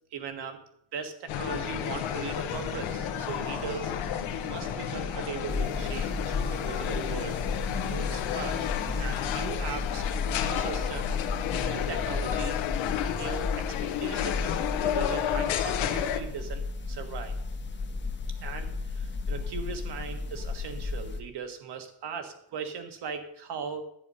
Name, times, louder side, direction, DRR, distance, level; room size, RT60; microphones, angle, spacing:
voice 1, 0.1-0.6 0.9-4.0 4.4-7.4 7.8-8.7 9.0-10.1 10.3-11.2 11.6-12.6 13.1-17.4 18.4-23.9, right 6 dB, 60° right, 7 dB, 1.6 m, -39 dB
sound 1, 1.3-16.2, left 9 dB, 80° left, 1.2 m, -31 dB
sound 2, 1.4-9.5, right 7 dB, 90° right, 2.1 m, -46 dB
sound 3, 5.5-21.2, left 4 dB, 25° left, 0.9 m, -34 dB
10.5 x 8.9 x 5.6 m, 0.72 s
cardioid pair, 150°, 46 cm